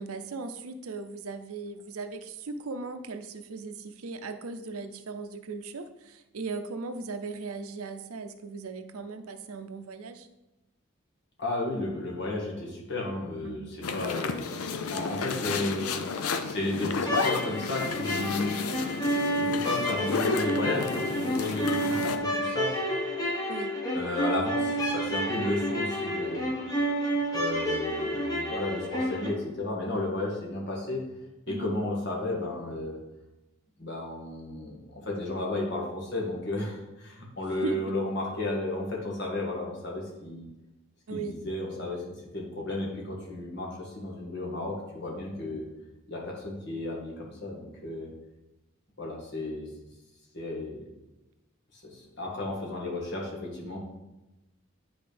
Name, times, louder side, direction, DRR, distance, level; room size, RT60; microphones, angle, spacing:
voice 1, 0.0-10.3 13.4-13.8 23.5-23.7 31.5-31.7 37.6-37.8 41.1-41.3, right 3 dB, 85° right, 9 dB, 0.6 m, -38 dB
voice 2, 11.4-15.9 16.4-18.6 19.2-22.8 23.9-26.5 27.3-31.1 31.5-33.0 33.8-40.4 41.1-45.7 46.1-48.1 49.0-49.7 50.3-50.8 51.7-53.8, left 2 dB, 50° left, -2 dB, 1.7 m, -33 dB
sound 1, 13.8-22.2, left 4 dB, 90° left, 0.6 m, -32 dB
sound 2, 17.1-29.3, equal, 15° left, 1.1 m, -30 dB
9.5 x 4.2 x 3.4 m, 1.0 s
head